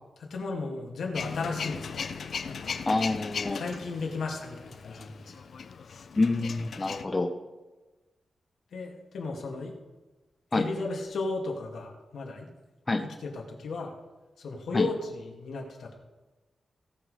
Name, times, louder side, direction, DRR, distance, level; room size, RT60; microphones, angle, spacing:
voice 1, 0.2-2.2 2.5-2.8 3.5-5.5 8.7-9.7 10.5-12.5 13.0-13.9 14.4-15.9, left 3 dB, 85° left, 0 dB, 2.3 m, -35 dB
Male speech man speaking / Vehicle / Engine starting, 1.1-7.0, left 5 dB, 60° left, 0.6 m, -37 dB
voice 2, 2.9-3.6 6.2-7.3 10.5-10.6 12.9-13.0 14.7-14.9, left 2 dB, 25° left, 5 dB, 0.8 m, -27 dB
17.5 x 6.1 x 5.0 m, 1.2 s
wide cardioid pair, 135°, 0 cm